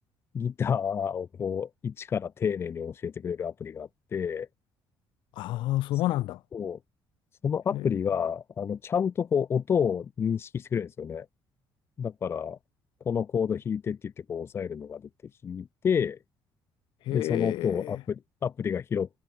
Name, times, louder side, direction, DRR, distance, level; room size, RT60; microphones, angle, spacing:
voice 1, 0.3-4.5 6.5-6.8 7.4-11.2 12.0-12.6 13.0-15.0 15.4-16.2 17.1-19.2, left 7 dB, 30° left, 1.4 m, -29 dB
voice 2, 5.4-6.4 7.7-7.8 17.1-18.0, left 16 dB, 75° left, 3.9 m, -29 dB
cardioid pair, 170°, 8 cm